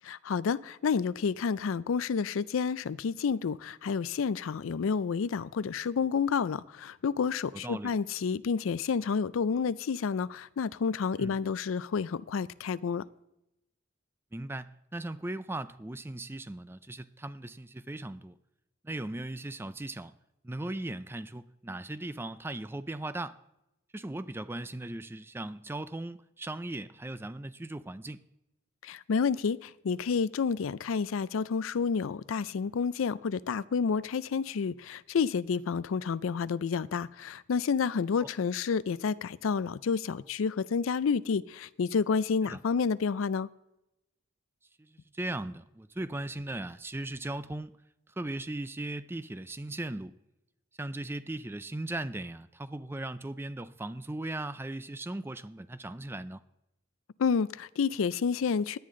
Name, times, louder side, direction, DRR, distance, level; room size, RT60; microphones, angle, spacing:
voice 1, 0.0-13.0 28.8-43.5 57.2-58.8, left 5 dB, 85° left, 0.4 m, -30 dB
voice 2, 7.5-8.0 11.2-11.4 14.3-18.3 18.8-20.1 20.4-23.4 23.9-28.2 38.2-38.3 42.4-42.6 44.8-47.7 48.2-50.1 50.8-56.4, right 2 dB, 10° right, 0.3 m, -38 dB
17.0 x 10.5 x 3.8 m
head